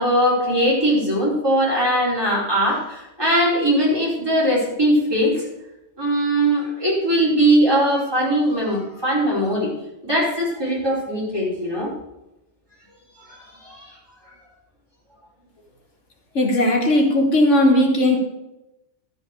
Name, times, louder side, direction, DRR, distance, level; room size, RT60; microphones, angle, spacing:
voice 1, 0.0-5.4 6.0-9.7 10.0-11.9 13.3-13.9, right 1 dB, 20° right, -6 dB, 4.7 m, -20 dB
voice 2, 16.3-18.2, left 1 dB, 90° left, 2 dB, 2.1 m, -17 dB
12.0 x 7.0 x 6.6 m, 0.92 s
omnidirectional pair, 1.2 m